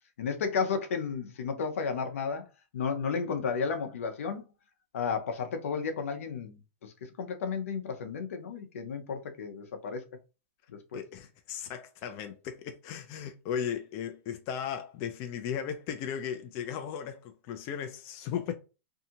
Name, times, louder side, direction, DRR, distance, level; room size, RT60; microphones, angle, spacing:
voice 1, 0.2-2.5 2.7-4.4 4.9-10.1 10.7-11.0, left 5 dB, 85° left, 0.7 m, -33 dB
voice 2, 10.9-18.5, left 8 dB, 40° left, 0.4 m, -36 dB
2.7 x 2.3 x 2.8 m
hypercardioid pair, 135°, 7 cm